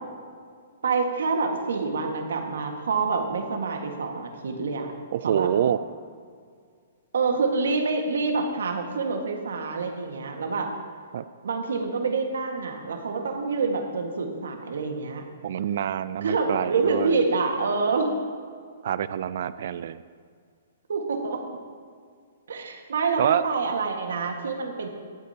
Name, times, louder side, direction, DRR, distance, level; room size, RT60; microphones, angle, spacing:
voice 1, 0.8-4.9 5.2-5.5 7.1-10.7 11.4-15.2 16.2-18.1 20.9-21.4 22.5-24.9, right 4 dB, 85° right, 3 dB, 1.6 m, -27 dB
voice 2, 5.1-5.8 11.1-11.2 15.4-17.2 18.8-20.0 23.2-23.4, right 9 dB, 60° right, 15 dB, 0.4 m, -26 dB
22.0 x 8.2 x 2.9 m, 2.1 s
hypercardioid pair, 150°, 0 cm